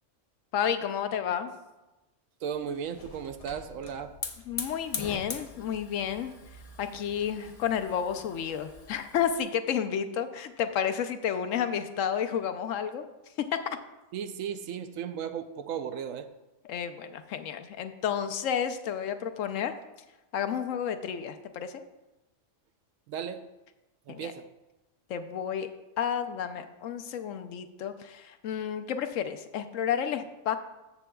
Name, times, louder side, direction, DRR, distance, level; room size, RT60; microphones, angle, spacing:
voice 1, 0.5-1.5 4.5-6.3 6.8-13.0 16.7-19.7 20.3-21.8 24.1-24.3 25.1-25.7 26.0-30.6, left 8 dB, 75° left, 9 dB, 1.0 m, -31 dB
voice 2, 2.4-4.1 14.1-16.3 23.1-23.5 24.1-24.5, right 8 dB, 80° right, 9 dB, 1.0 m, -35 dB
Hiss / Fire, 2.5-9.4, left 4 dB, 40° left, 0.6 m, -42 dB
14.0 x 7.3 x 2.3 m, 1.0 s
omnidirectional pair, 1.3 m